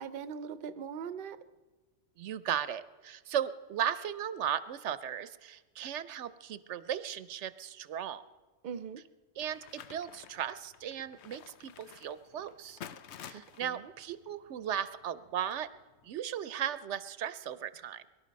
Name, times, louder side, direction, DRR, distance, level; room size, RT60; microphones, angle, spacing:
voice 1, 0.0-1.4 8.6-9.0 13.3-13.9, right 7 dB, 55° right, 13 dB, 0.8 m, -41 dB
voice 2, 2.2-8.2 9.4-12.8 13.2-15.7 16.0-18.0, right 9 dB, 85° right, 14 dB, 1.0 m, -36 dB
sound 1, 9.4-16.1, left 8 dB, 75° left, 1.0 m, -52 dB
23.0 x 12.0 x 5.2 m, 1.3 s
omnidirectional pair, 1.2 m